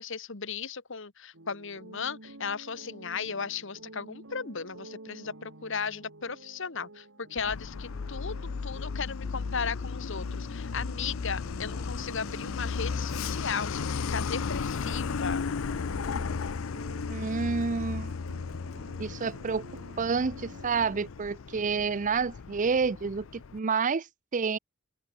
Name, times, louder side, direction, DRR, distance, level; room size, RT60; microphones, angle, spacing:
voice 1, 0.0-15.4, left 6 dB, 65° left, 1.6 m, -36 dB
sound 1, 1.3-21.1, right 2 dB, 70° right, 2.9 m, -50 dB
Truck, 7.4-23.6, left 5 dB, 85° left, 0.6 m, -35 dB
voice 2, 17.1-18.2 19.0-19.7 20.0-24.1 24.3-24.6, right 5 dB, 40° right, 0.5 m, -29 dB
open air
head